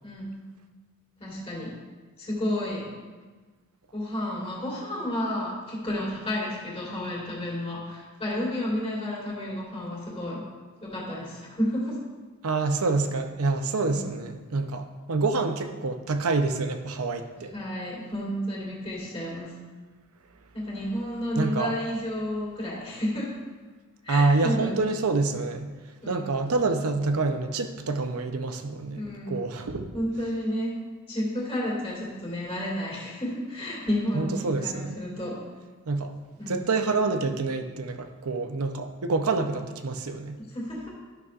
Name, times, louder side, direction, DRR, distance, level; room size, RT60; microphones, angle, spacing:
voice 1, 0.0-0.5 1.2-1.7 2.2-2.9 3.9-10.4 10.8-12.0 13.8-14.0 17.4-19.5 20.5-23.3 24.0-24.9 26.0-26.3 28.9-29.6 29.9-35.4 36.4-36.6 40.4-40.9, left 1 dB, 30° left, -5 dB, 2.2 m, -31 dB
voice 2, 12.4-17.5 21.3-21.7 24.1-25.7 26.1-29.9 34.1-35.0 35.9-36.1 36.5-40.4, right 3 dB, 85° right, 6 dB, 0.7 m, -27 dB
12.5 x 6.0 x 2.5 m, 1.4 s
head